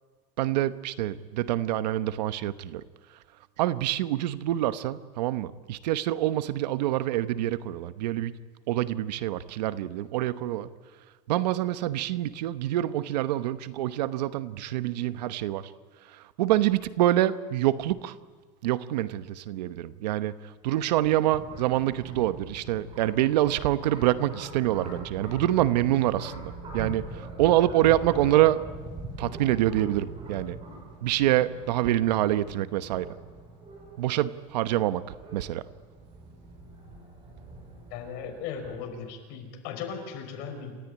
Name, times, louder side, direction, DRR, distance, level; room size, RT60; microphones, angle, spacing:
voice 1, 0.4-2.8 3.6-8.3 8.7-10.7 11.3-15.7 16.2-18.1 18.6-20.4 20.6-28.6 29.2-30.6 31.0-33.1 34.0-35.0 35.3-35.6, right 14 dB, 85° right, 13 dB, 1.1 m, -26 dB
sound 1, 20.6-38.8, right 2 dB, 25° right, 7.0 m, -43 dB
voice 2, 37.9-40.8, left 6 dB, 50° left, 4 dB, 5.2 m, -37 dB
28.5 x 14.0 x 9.7 m, 1.5 s
supercardioid pair, 150°, 21 cm